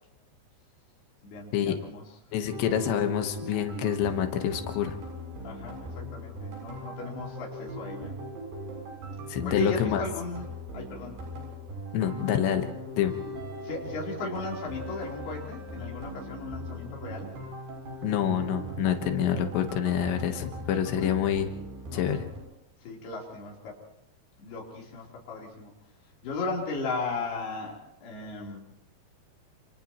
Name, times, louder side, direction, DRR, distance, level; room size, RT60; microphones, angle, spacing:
voice 1, 1.2-2.0 5.4-8.1 9.4-11.2 13.6-17.3 20.9-21.1 21.9-22.3 22.8-23.8 24.4-25.7 26.2-28.7, left 3 dB, 65° left, -3 dB, 5.7 m, -36 dB
voice 2, 2.3-5.0 9.3-10.0 11.9-12.7 13.0-13.1 18.0-21.5 21.9-22.3, left 9 dB, 85° left, 6 dB, 3.6 m, -27 dB
sound 1, 2.5-22.4, equal, 80° right, 9.8 m, -39 dB
30.0 x 28.5 x 3.1 m, 0.79 s
omnidirectional pair, 4.9 m